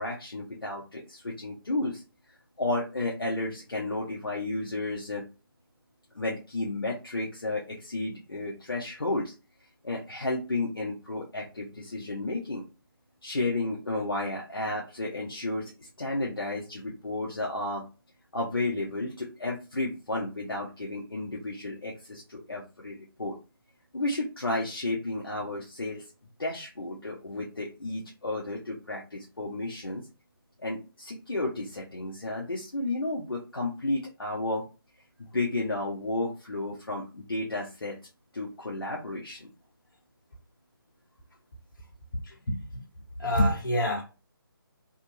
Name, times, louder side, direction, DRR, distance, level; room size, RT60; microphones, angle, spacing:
voice 1, 0.0-2.0 2.6-5.2 6.1-9.3 9.8-12.6 13.2-17.8 18.3-23.4 23.9-26.0 26.4-30.0 30.6-34.6 35.2-38.0 38.3-39.5, left 2 dB, 70° left, 0.8 m, -32 dB
voice 2, 42.2-42.8 43.2-44.0, equal, 55° left, 1.4 m, -27 dB
2.7 x 2.5 x 2.6 m
figure-of-eight pair, 150°, 12 cm